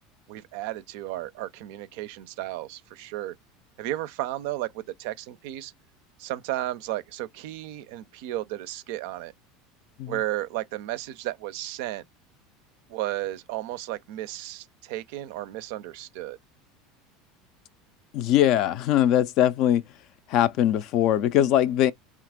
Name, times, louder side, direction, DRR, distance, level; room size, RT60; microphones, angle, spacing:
voice 1, 0.3-3.4 3.8-5.7 6.2-9.3 10.1-12.0 12.9-16.4, right 15 dB, 65° right, 0.4 m, -33 dB
voice 2, 18.1-19.8 20.3-21.9, left 11 dB, 55° left, 0.4 m, -21 dB
2.9 x 2.4 x 3.5 m
hypercardioid pair, 80°, 0 cm